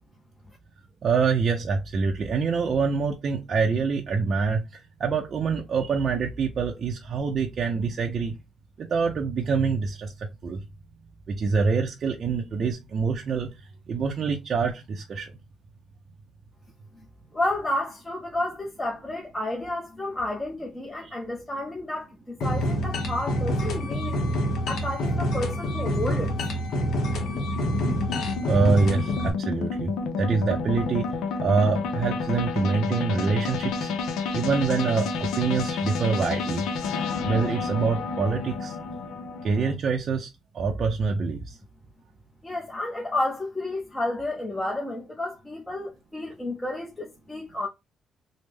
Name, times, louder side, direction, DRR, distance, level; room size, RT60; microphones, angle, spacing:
voice 1, 1.0-8.4 8.8-10.6 11.3-13.5 13.9-15.3 21.0-21.2 28.5-31.1 31.4-33.9 34.3-36.6 37.2-38.8 39.4-40.3 40.5-41.6, right 5 dB, 50° right, 0.4 m, -25 dB
voice 2, 17.3-24.2 24.7-26.3 42.4-47.7, left 1 dB, 15° left, 0.6 m, -31 dB
sound 1, 22.4-29.3, equal, 65° left, 0.8 m, -27 dB
sound 2, 25.5-39.7, left 4 dB, 90° left, 0.5 m, -30 dB
3.2 x 2.0 x 3.3 m
cardioid pair, 110°, 0 cm